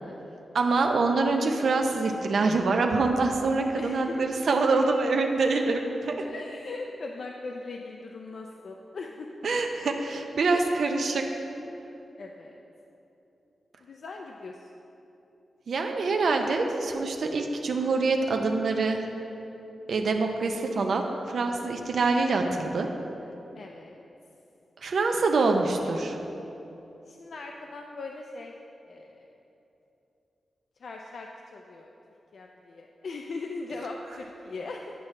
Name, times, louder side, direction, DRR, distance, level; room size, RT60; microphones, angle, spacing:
voice 1, 0.0-0.6 3.8-4.2 6.2-9.3 10.5-10.6 12.2-12.6 13.8-14.7 23.6-24.0 27.1-28.5 28.9-29.3 30.8-31.9 32.3-34.9, left 3 dB, 60° left, 1 dB, 0.4 m, -40 dB
voice 2, 0.5-6.2 9.4-11.4 15.7-19.1 19.9-22.9 24.8-26.1, right 3 dB, 65° right, 3 dB, 0.5 m, -25 dB
10.0 x 6.0 x 3.2 m, 2.9 s
wide cardioid pair, 155°, 0 cm